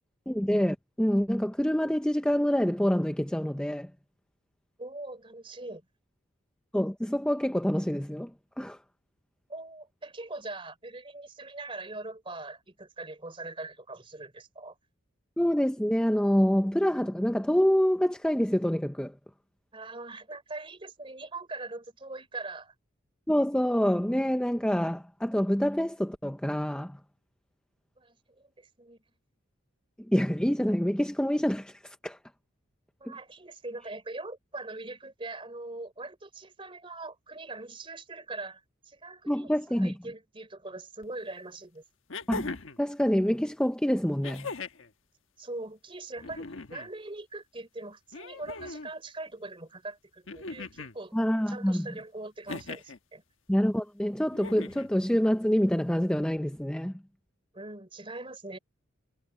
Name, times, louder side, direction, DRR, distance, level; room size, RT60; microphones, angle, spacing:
voice 1, 0.3-3.9 6.7-8.3 8.6-8.8 15.4-19.1 23.3-27.0 30.1-32.2 33.1-33.2 39.3-39.9 42.3-44.5 51.1-51.9 53.5-56.9, equal, 5° left, 0.6 m, -26 dB
voice 2, 4.8-5.9 9.5-14.8 19.7-22.7 28.0-29.0 33.0-41.8 45.4-51.2 51.5-53.2 57.5-58.6, right 2 dB, 25° right, 3.5 m, -42 dB
sound 1, 41.0-41.1 42.1-42.8 44.2-44.9 46.2-46.9 48.1-48.9 50.3-51.0 52.5-53.0 54.3-54.9 56.2-56.3, left 3 dB, 80° left, 1.3 m, -39 dB
head